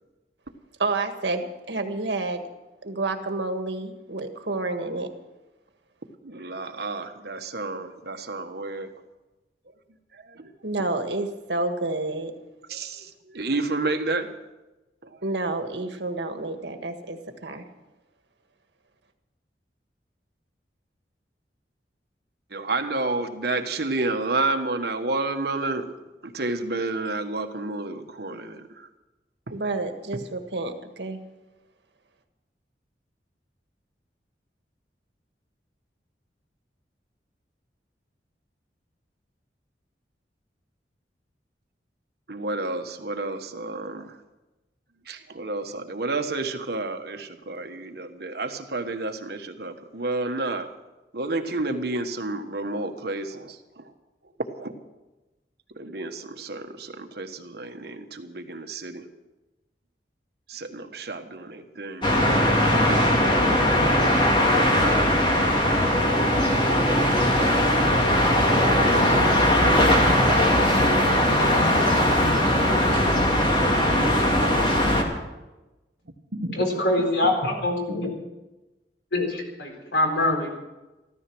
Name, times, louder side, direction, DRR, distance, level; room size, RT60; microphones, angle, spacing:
voice 1, 0.8-2.4 2.8-5.1 10.6-12.3 15.2-17.7 29.5-31.2, right 2 dB, 80° right, 6 dB, 1.6 m, -29 dB
voice 2, 6.2-8.9 10.1-10.5 12.7-14.3 15.0-15.2 22.5-25.8 26.2-28.9 29.5-29.6 42.3-44.1 45.1-50.7 51.1-53.9 54.6-54.7 55.8-59.0 60.5-62.1 76.3-76.6 77.2-77.3, right 2 dB, 65° right, 6 dB, 1.4 m, -30 dB
sound 1, 62.0-75.0, left 1 dB, 30° left, 2.3 m, -20 dB
voice 3, 76.6-78.1 79.1-80.5, left 2 dB, 80° left, 2 dB, 4.3 m, -24 dB
14.5 x 14.0 x 6.2 m, 1.1 s
head